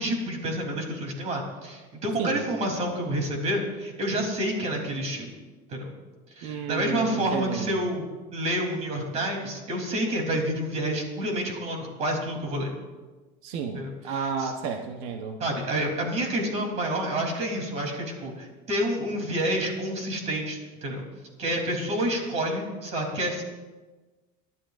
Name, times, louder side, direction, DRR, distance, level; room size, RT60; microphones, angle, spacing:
voice 1, 0.0-5.3 5.7-5.9 6.4-8.0 8.3-12.7 13.7-13.9 14.4-14.5 15.4-21.0 21.4-23.4, right 1 dB, 35° right, 1 dB, 3.4 m, -28 dB
voice 2, 6.4-7.8 13.4-15.4, right 5 dB, 90° right, 4 dB, 1.1 m, -32 dB
23.0 x 12.5 x 2.6 m, 1.2 s
cardioid pair, 160°, 18 cm